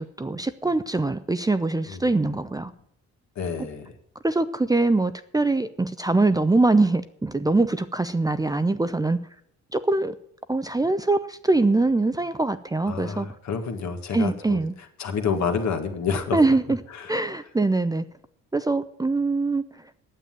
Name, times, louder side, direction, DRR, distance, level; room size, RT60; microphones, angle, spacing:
voice 1, 0.0-2.7 4.2-9.2 9.7-10.2 10.5-13.3 14.1-14.7 16.3-16.8 17.1-18.0 18.5-19.6, right 2 dB, 10° right, 12 dB, 0.5 m, -23 dB
voice 2, 3.4-3.9 12.9-14.6 15.0-16.4 16.9-17.1, left 6 dB, 65° left, 5 dB, 1.8 m, -28 dB
9.4 x 7.7 x 8.9 m, 0.69 s
cardioid pair, 90°, 30 cm